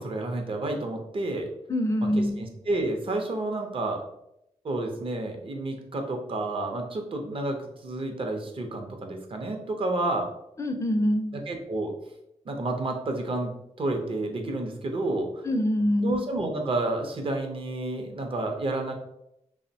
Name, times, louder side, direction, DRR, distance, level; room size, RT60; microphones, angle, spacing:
voice 1, 0.0-1.5 2.4-4.0 4.6-10.3 11.5-11.9 12.5-13.5 13.8-15.5 16.0-18.9, right 2 dB, 50° right, 3 dB, 0.5 m, -30 dB
voice 2, 1.7-2.4 10.6-11.3 15.4-16.2, equal, 25° left, 5 dB, 0.4 m, -25 dB
2.8 x 2.0 x 2.6 m, 0.80 s
cardioid pair, 75°, 12 cm